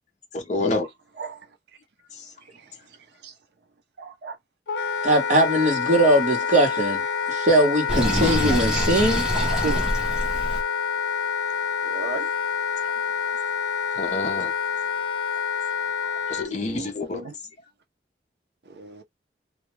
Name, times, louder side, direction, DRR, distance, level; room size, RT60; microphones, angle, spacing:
voice 1, 0.3-0.9 2.2-2.3 13.9-14.5 16.3-17.2, left 2 dB, 40° left, 0.6 m, -27 dB
voice 2, 4.0-4.3 9.5-9.9 11.8-12.3 16.3-17.3 18.8-19.0, right 4 dB, 65° right, 0.6 m, -34 dB
Wind instrument woodwind instrument, 4.7-16.5, left 7 dB, 85° left, 0.5 m, -27 dB
voice 3, 5.0-9.3, right 1 dB, 45° right, 1.0 m, -20 dB
Sink (filling or washing), 7.9-10.6, equal, 5° right, 0.7 m, -25 dB
2.3 x 2.1 x 3.0 m
head